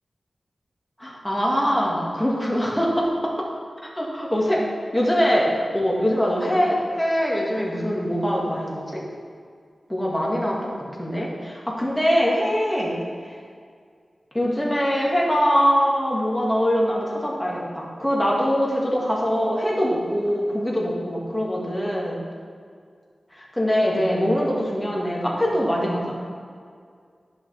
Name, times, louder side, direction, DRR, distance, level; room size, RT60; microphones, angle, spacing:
voice 1, 1.0-3.1 4.0-4.6 4.9-9.0 9.9-10.7 11.0-12.9 13.2-13.3 14.3-22.2 23.4-26.1, equal, 10° left, -4 dB, 2.2 m, -23 dB
11.0 x 6.4 x 3.5 m, 2.1 s
wide cardioid pair, 60°, 0 cm